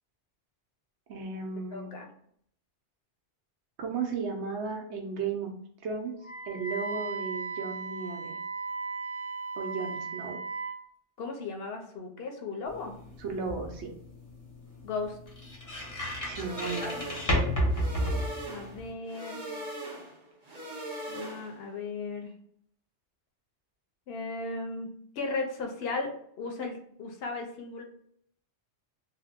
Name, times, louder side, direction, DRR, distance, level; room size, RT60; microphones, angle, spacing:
voice 1, 1.1-2.0 3.8-5.5 5.8-6.1 6.5-8.4 9.6-10.4 13.2-13.9 16.2-17.0, right 5 dB, 80° right, 2 dB, 0.9 m, -35 dB
voice 2, 1.7-2.1 11.2-12.9 14.8-15.2 16.8-17.2 18.5-19.4 21.1-22.3 24.1-27.8, left 3 dB, 65° left, 3 dB, 0.8 m, -36 dB
Wind instrument woodwind instrument, 6.2-10.8, right 4 dB, 90° left, 1.0 m, -36 dB
sound 1, 12.7-18.9, equal, 20° left, 0.6 m, -32 dB
sound 2, 16.3-21.7, right 1 dB, 40° right, 0.7 m, -40 dB
2.7 x 2.0 x 3.4 m, 0.65 s
omnidirectional pair, 1.2 m